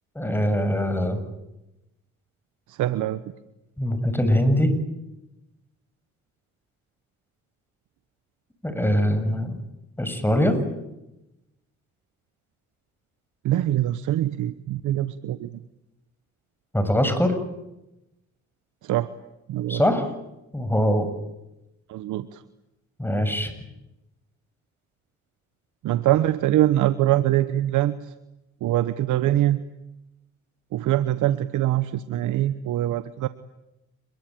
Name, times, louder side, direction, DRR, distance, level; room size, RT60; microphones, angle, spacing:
voice 1, 0.2-1.2 3.8-4.8 8.6-9.6 10.0-10.6 16.7-17.3 19.7-20.0 20.5-21.1 23.0-23.5, equal, 5° left, 9 dB, 7.1 m, -22 dB
voice 2, 2.7-3.2 13.4-15.6 18.8-19.1 19.5-19.8 21.9-22.4 25.8-28.1 28.6-29.6 30.7-33.3, right 13 dB, 85° right, 13 dB, 1.1 m, -23 dB
27.5 x 22.5 x 9.2 m, 0.93 s
cardioid pair, 75°, 30 cm